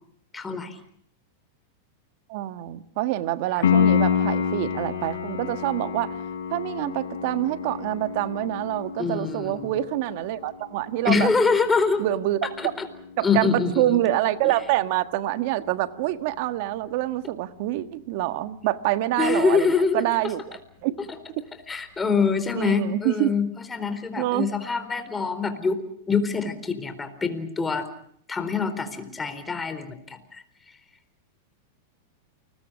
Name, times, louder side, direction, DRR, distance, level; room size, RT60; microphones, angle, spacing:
voice 1, 0.3-0.8 9.0-9.7 11.1-12.0 12.6-12.7 13.2-14.0 14.4-14.5 19.2-20.0 21.7-25.8 26.1-27.9 28.3-30.4, left 5 dB, 15° left, 9 dB, 4.2 m, -25 dB
voice 2, 2.3-6.2 6.5-11.3 12.0-12.7 13.2-21.0 22.5-23.3 24.2-24.5, right 15 dB, 60° right, 11 dB, 1.5 m, -26 dB
Piano, 3.6-14.3 17.6-17.7, left 7 dB, 85° left, 6.1 m, -29 dB
29.0 x 21.5 x 6.4 m, 0.67 s
hypercardioid pair, 125°, 0 cm